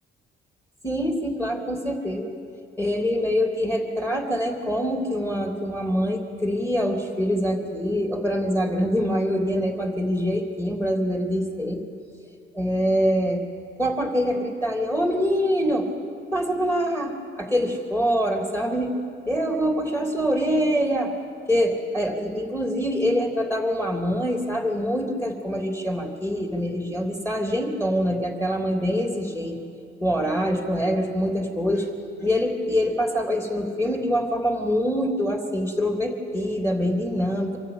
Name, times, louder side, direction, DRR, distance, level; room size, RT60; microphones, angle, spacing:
voice 1, 0.8-2.3 2.8-11.8 12.5-13.4 13.8-15.9 16.3-19.0 19.2-21.1 21.5-29.6 30.0-31.9 32.2-37.6, equal, 10° left, 2 dB, 3.3 m, -24 dB
25.0 x 13.0 x 9.0 m, 2.4 s
cardioid pair, 90°, 20 cm